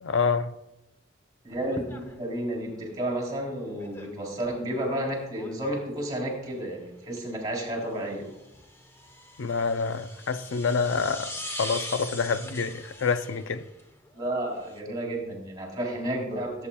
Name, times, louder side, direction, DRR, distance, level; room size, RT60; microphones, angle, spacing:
voice 1, 0.0-0.5 9.4-13.7, left 5 dB, 85° left, 0.5 m, -27 dB
voice 2, 1.4-8.3 14.1-16.7, right 1 dB, 20° right, 3.4 m, -31 dB
sound 1, 1.5-14.8, left 1 dB, 15° left, 0.9 m, -43 dB
18.0 x 8.5 x 2.3 m
head